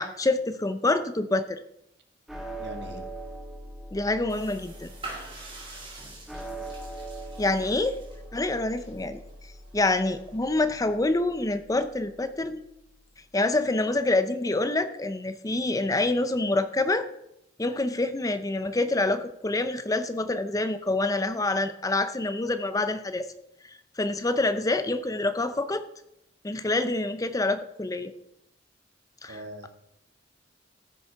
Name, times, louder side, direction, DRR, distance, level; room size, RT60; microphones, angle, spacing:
voice 1, 0.0-1.6 3.9-4.9 7.4-7.9 8.3-9.2 9.7-12.6 13.3-17.1 17.6-23.3 23.6-25.9 26.4-28.1 29.2-29.4, left 2 dB, 20° left, 11 dB, 0.5 m, -26 dB
sound 1, 2.3-12.7, right 1 dB, ahead, 1.7 m, -42 dB
voice 2, 2.6-3.1 7.5-7.7 29.3-29.7, right 1 dB, 60° right, 6 dB, 1.5 m, -41 dB
sound 2, 4.3-11.0, right 2 dB, 30° right, 2.6 m, -46 dB
14.0 x 6.6 x 4.6 m, 0.80 s
head